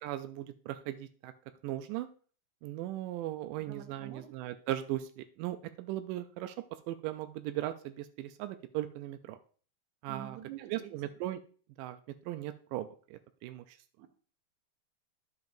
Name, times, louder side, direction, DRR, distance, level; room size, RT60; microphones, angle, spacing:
voice 1, 0.0-1.3 1.6-2.1 2.6-9.4 10.0-10.4 10.6-11.4 11.8-13.8, right 14 dB, 90° right, 9 dB, 1.8 m, -38 dB
voice 2, 3.6-4.4 10.1-11.1 14.0-14.1, right 10 dB, 75° right, 6 dB, 2.0 m, -48 dB
10.5 x 7.1 x 2.6 m, 0.42 s
omnidirectional pair, 4.3 m